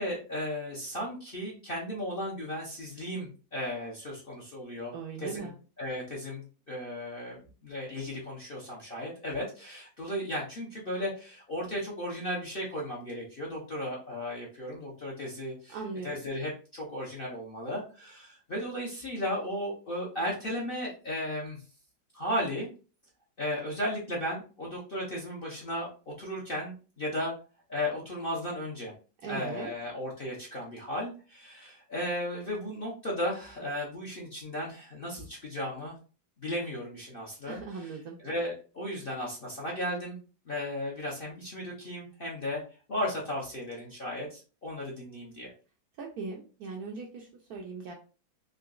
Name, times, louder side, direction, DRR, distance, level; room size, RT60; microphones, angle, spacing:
voice 1, 0.0-4.9 5.2-5.5 5.8-15.8 16.0-21.6 22.1-22.7 23.4-27.3 27.7-28.9 29.3-36.0 36.4-40.2 40.4-42.6 42.9-45.5, left 1 dB, 45° left, -4 dB, 0.7 m, -35 dB
voice 2, 4.9-5.5 15.7-16.2 29.2-29.7 37.5-38.2 46.0-47.9, right 4 dB, 75° right, 1 dB, 0.9 m, -39 dB
3.8 x 2.8 x 2.4 m, 0.36 s
omnidirectional pair, 2.1 m